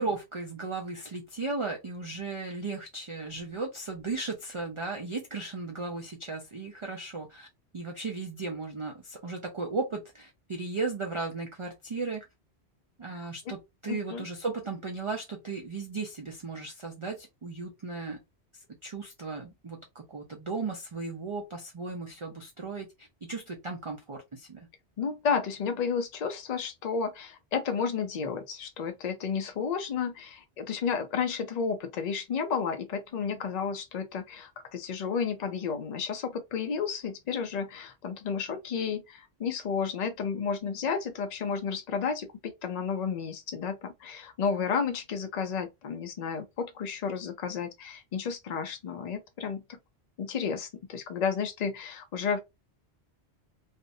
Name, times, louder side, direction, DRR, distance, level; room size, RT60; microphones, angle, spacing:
voice 1, 0.0-7.5 7.7-12.2 13.0-18.2 18.5-24.7, right 3 dB, 50° right, 0.3 m, -36 dB
voice 2, 13.1-13.5 13.9-14.3 25.0-49.8 50.2-52.4, left 6 dB, 55° left, 0.5 m, -32 dB
2.5 x 2.1 x 2.5 m
omnidirectional pair, 1.1 m